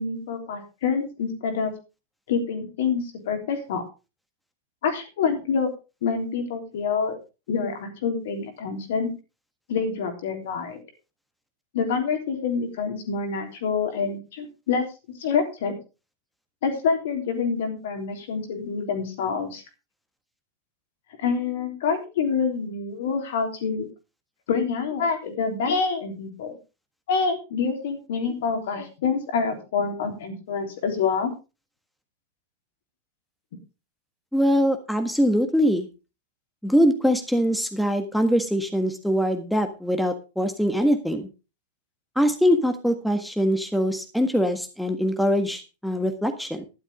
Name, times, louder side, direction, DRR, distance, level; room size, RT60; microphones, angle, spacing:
voice 1, 0.0-1.7 2.3-3.8 4.8-5.7 6.0-7.2 7.5-9.1 9.7-10.8 11.7-14.8 15.2-15.8 16.6-19.6 21.2-23.9 24.5-26.5 27.1-31.3, left 5 dB, 55° left, 4 dB, 3.4 m, -26 dB
voice 2, 34.3-35.9 36.6-41.3 42.1-46.7, equal, ahead, 7 dB, 1.6 m, -23 dB
12.5 x 11.5 x 3.6 m, 0.30 s
figure-of-eight pair, 90°, 0 cm